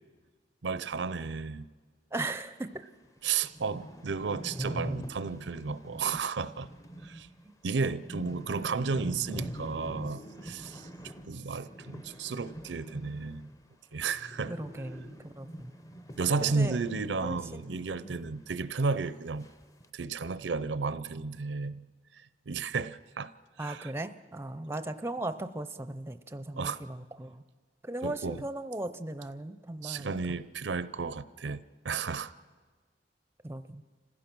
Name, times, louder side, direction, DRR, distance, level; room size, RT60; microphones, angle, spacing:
voice 1, 0.6-1.7 3.2-6.7 7.0-7.3 7.6-10.9 11.3-13.5 13.9-14.5 16.2-19.5 19.9-21.9 22.5-23.3 23.6-23.9 26.6-26.8 28.0-28.4 29.8-32.3, right 4 dB, 80° right, 0.6 m, -33 dB
voice 2, 2.1-2.8 14.5-15.7 16.4-16.8 17.2-17.8 23.6-27.4 27.8-30.4 33.4-33.8, right 2 dB, 15° right, 0.6 m, -38 dB
sound 1, 2.7-2.8 3.2-3.3 3.4-13.7 13.9-18.4 18.7-18.8 19.4-19.9, equal, 20° left, 0.7 m, -43 dB
29.5 x 15.5 x 6.1 m
head